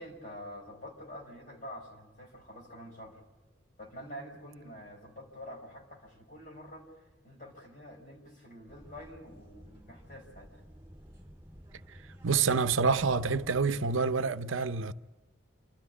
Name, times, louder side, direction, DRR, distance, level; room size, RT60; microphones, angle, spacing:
voice 1, 0.0-3.2 3.8-10.6, equal, 40° left, 5.5 m, -47 dB
sound 1, 8.7-13.8, equal, 15° right, 3.5 m, -53 dB
voice 2, 12.2-14.9, right 5 dB, 80° right, 0.7 m, -27 dB
28.5 x 13.0 x 9.7 m
head